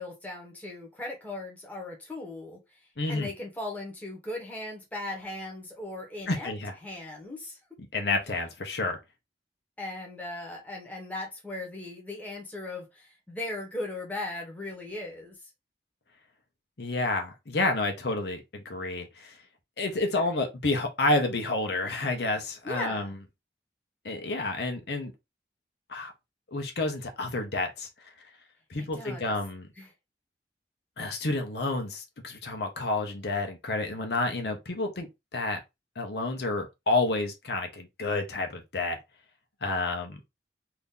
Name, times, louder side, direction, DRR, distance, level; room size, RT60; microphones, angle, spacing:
voice 1, 0.0-2.8 3.1-6.5 6.8-7.6 9.8-15.4 19.9-20.4 22.6-23.1 28.8-29.3 29.8-29.9, left 2 dB, 10° left, 1.0 m, -38 dB
voice 2, 3.0-3.3 6.3-6.7 7.9-9.0 16.8-19.4 19.8-23.1 24.0-25.1 25.9-26.1 26.5-27.9 28.7-29.7 31.0-35.6 36.0-39.0 39.6-40.2, left 2 dB, 70° left, 0.8 m, -29 dB
2.8 x 2.5 x 3.6 m
head